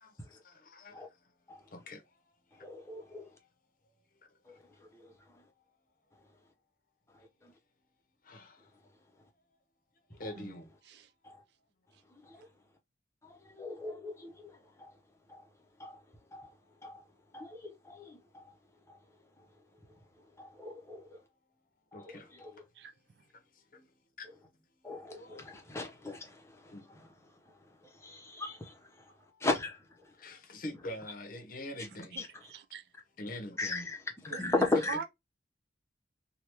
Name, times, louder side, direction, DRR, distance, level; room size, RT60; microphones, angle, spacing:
voice 1, 0.0-1.0 1.7-2.2 2.5-2.7 8.2-8.7 10.1-10.7 21.9-22.3 23.5-23.8 24.2-24.3 25.1-25.4 26.7-26.8 29.3-29.4 30.2-32.2 33.2-33.8, left 1 dB, 45° left, 0.8 m, -45 dB
voice 2, 2.5-3.4 4.4-5.5 6.1-6.4 7.1-7.6 8.6-9.2 10.1-10.4 11.2-11.4 12.0-12.5 13.2-21.2 21.9-22.7 24.8-30.3 31.8-31.9 32.2-32.4 33.6-34.9, left 3 dB, 15° left, 0.7 m, -40 dB
voice 3, 32.5-32.8 34.3-35.0, right 5 dB, 60° right, 0.4 m, -41 dB
3.3 x 2.2 x 2.9 m
head